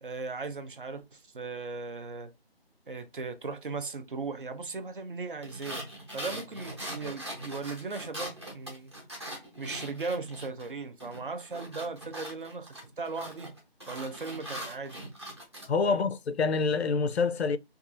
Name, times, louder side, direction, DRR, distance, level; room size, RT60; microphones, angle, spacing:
voice 1, 0.0-2.3 2.9-5.8 6.1-8.9 9.2-13.5 13.9-15.1 15.8-16.1, right 4 dB, 55° right, 0.5 m, -38 dB
sound 1, 5.4-10.7 11.0-15.7, right 1 dB, 25° right, 0.8 m, -41 dB
voice 2, 15.7-17.6, left 4 dB, 90° left, 0.5 m, -26 dB
2.6 x 2.4 x 2.4 m
figure-of-eight pair, 175°, 31 cm